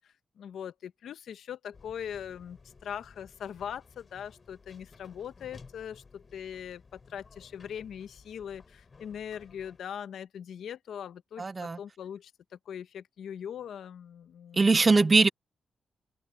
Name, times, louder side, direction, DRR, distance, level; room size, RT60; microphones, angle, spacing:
voice 1, 0.4-15.0, left 8 dB, 80° left, 0.9 m, -41 dB
sound 1, 1.7-9.8, left 4 dB, 40° left, 4.4 m, -56 dB
voice 2, 11.4-11.8 14.5-15.3, right 3 dB, 30° right, 0.4 m, -21 dB
cardioid pair, 105°, 0 cm